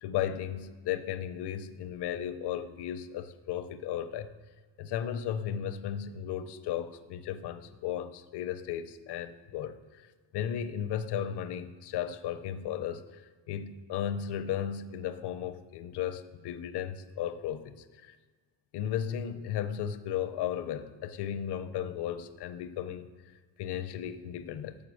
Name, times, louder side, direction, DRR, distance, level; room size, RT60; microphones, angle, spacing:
voice 1, 0.0-4.3 4.8-10.0 10.3-13.2 13.5-18.2 18.7-23.1 23.6-24.8, left 9 dB, 70° left, 11 dB, 0.6 m, -35 dB
7.2 x 5.3 x 6.3 m, 1.4 s
cardioid pair, 155°, 42 cm